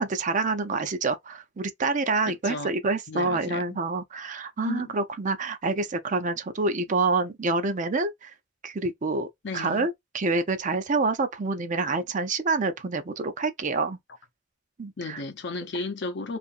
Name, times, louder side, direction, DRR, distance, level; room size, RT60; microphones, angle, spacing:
voice 1, 0.0-8.3 8.6-9.3 9.5-14.0 14.8-15.2, right 3 dB, 40° right, 0.5 m, -27 dB
voice 2, 2.3-2.7 3.1-3.8 4.6-4.9 9.4-9.9 15.0-16.4, left 3 dB, 65° left, 0.6 m, -34 dB
2.7 x 2.5 x 2.4 m
head